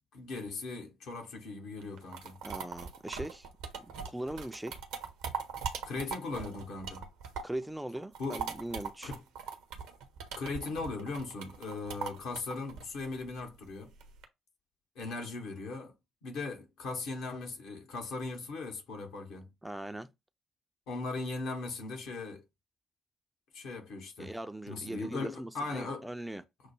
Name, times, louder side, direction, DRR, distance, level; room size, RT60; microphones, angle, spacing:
voice 1, 0.1-2.4 5.8-7.0 8.2-8.5 9.0-9.2 10.4-13.9 14.9-15.9 16.2-19.5 20.9-22.4 23.5-24.3 24.7-26.1, left 3 dB, 60° left, 1.0 m, -38 dB
sound 1, 1.8-7.6 8.0-14.2, right 6 dB, 65° right, 0.6 m, -41 dB
voice 2, 2.4-3.5 3.8-4.8 7.4-9.1 19.6-20.1 24.2-26.4, right 1 dB, 5° right, 0.4 m, -40 dB
6.2 x 2.1 x 3.1 m
figure-of-eight pair, 45°, 0 cm